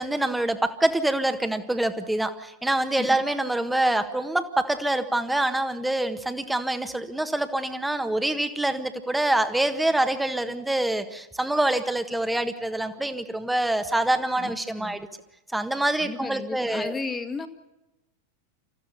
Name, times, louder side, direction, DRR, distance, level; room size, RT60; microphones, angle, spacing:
voice 1, 0.0-15.1 15.5-17.0, right 1 dB, 5° right, 9 dB, 1.6 m, -25 dB
voice 2, 14.4-15.0 16.0-17.5, left 4 dB, 15° left, 6 dB, 2.0 m, -34 dB
28.0 x 15.0 x 6.9 m, 0.99 s
figure-of-eight pair, 90°, 0 cm